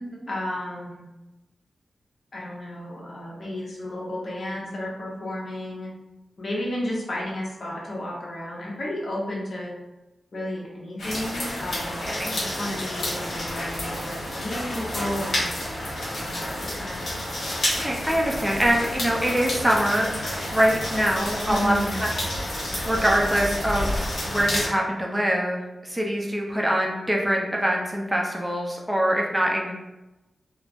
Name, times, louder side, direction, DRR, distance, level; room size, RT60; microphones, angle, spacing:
voice 1, 0.3-1.1 2.3-5.9 6.4-9.7 10.3-12.0 12.3-15.5 16.1-17.1 21.5-22.0, left 1 dB, 55° left, -5 dB, 0.8 m, -32 dB
sound 1, 11.0-24.7, left 1 dB, 75° left, 1.1 m, -30 dB
voice 2, 12.0-12.3 17.8-20.2 20.5-21.8 22.8-29.7, equal, 10° right, -1 dB, 0.5 m, -24 dB
3.0 x 2.0 x 2.5 m, 1.0 s
cardioid pair, 75°, 0 cm